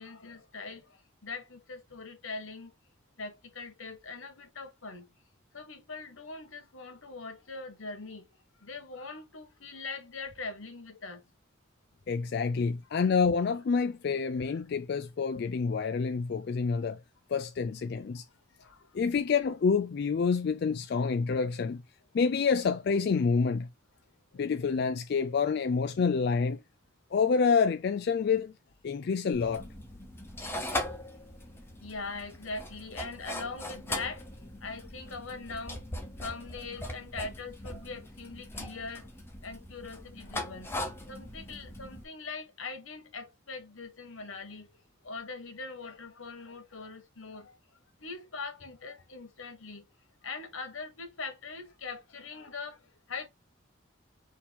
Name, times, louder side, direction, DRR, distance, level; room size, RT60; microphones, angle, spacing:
voice 1, 0.0-2.7 3.2-5.1 5.5-8.2 8.6-11.2 14.5-14.6 18.6-18.8 24.3-24.5 31.8-35.8 36.2-39.1 39.4-40.7 41.1-44.7 45.0-47.6 48.0-49.8 50.2-53.3, left 4 dB, 85° left, 1.3 m, -42 dB
voice 2, 12.1-17.0 17.3-18.2 18.9-21.8 22.1-23.7 24.4-26.6 27.1-28.5 28.8-29.6, left 5 dB, 55° left, 0.3 m, -27 dB
sound 1, 29.3-42.0, left 1 dB, 10° left, 0.8 m, -40 dB
4.3 x 2.8 x 3.9 m
head